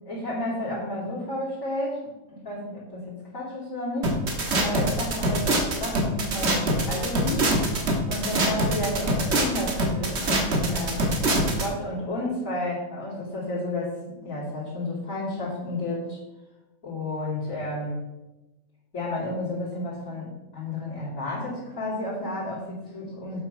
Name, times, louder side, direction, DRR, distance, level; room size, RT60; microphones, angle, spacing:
voice 1, 0.1-2.0 2.3-4.2 4.6-7.6 8.1-11.0 11.6-16.2 16.8-18.0 18.9-23.4, left 1 dB, 70° left, -10 dB, 3.3 m, -31 dB
sound 1, 4.0-11.7, right 1 dB, 50° right, 1.6 m, -24 dB
7.7 x 7.6 x 5.5 m, 1.0 s
omnidirectional pair, 1.5 m